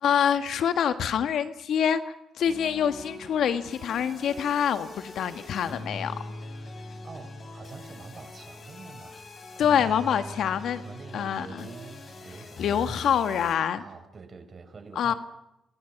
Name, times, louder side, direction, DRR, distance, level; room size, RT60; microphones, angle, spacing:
voice 1, 0.0-6.2 9.6-10.8 11.1-11.7 12.6-13.8 14.9-15.1, left 8 dB, 70° left, 9 dB, 1.6 m, -26 dB
sound 1, 2.4-13.5, left 2 dB, 50° left, 6.8 m, -42 dB
voice 2, 7.0-9.2 9.5-10.3 10.8-13.1 13.8-15.2, right 5 dB, 50° right, 8 dB, 5.3 m, -46 dB
29.5 x 27.0 x 6.0 m, 0.87 s
supercardioid pair, 55°, 0 cm